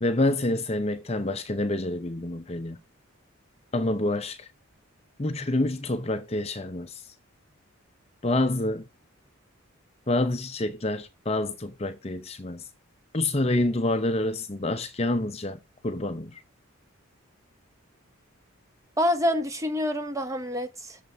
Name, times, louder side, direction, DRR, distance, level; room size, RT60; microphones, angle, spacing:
voice 1, 0.0-2.8 3.7-4.5 5.2-7.0 8.2-8.8 10.1-12.6 13.1-16.4, left 2 dB, 30° left, 0.6 m, -27 dB
voice 2, 19.0-21.0, left 1 dB, 15° right, 1.1 m, -27 dB
7.0 x 5.8 x 5.7 m
head